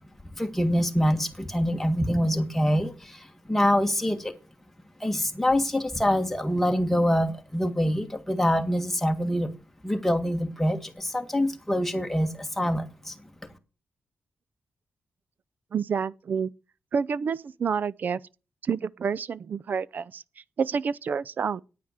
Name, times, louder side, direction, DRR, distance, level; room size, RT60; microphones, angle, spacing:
voice 1, 0.3-4.3 5.0-9.5 9.8-13.5, equal, 5° left, 1.6 m, -25 dB
voice 2, 15.7-16.5 16.9-18.2 18.6-20.2 20.6-21.6, right 6 dB, 50° right, 0.5 m, -28 dB
9.5 x 9.2 x 6.4 m
wide cardioid pair, 140°, 4 cm